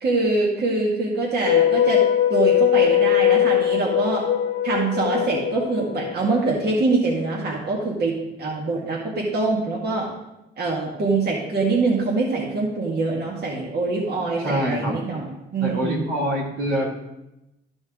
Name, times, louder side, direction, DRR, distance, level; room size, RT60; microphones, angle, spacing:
voice 1, 0.0-2.0 2.3-4.2 4.6-10.1 10.6-16.0, right 3 dB, 55° right, -4 dB, 1.9 m, -24 dB
sound 1, 1.4-6.6, left 11 dB, 80° left, 0.7 m, -20 dB
voice 2, 14.4-15.0 15.6-16.9, equal, 90° right, -5 dB, 2.8 m, -25 dB
12.0 x 5.1 x 3.7 m, 0.91 s
cardioid pair, 90°, 20 cm